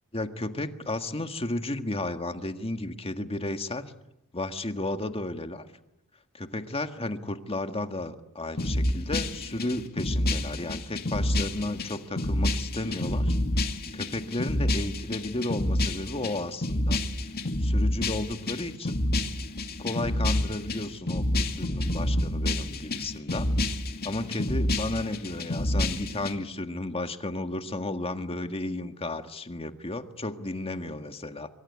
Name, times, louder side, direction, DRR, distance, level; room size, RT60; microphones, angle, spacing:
voice 1, 0.1-3.9 4.3-5.7 6.3-13.4 13.9-17.0 17.6-19.0 19.8-23.5 24.0-31.5, left 2 dB, 25° left, 8 dB, 1.7 m, -33 dB
sound 1, 8.6-26.3, left 1 dB, 45° left, 2.4 m, -28 dB
25.5 x 24.0 x 9.8 m, 0.86 s
head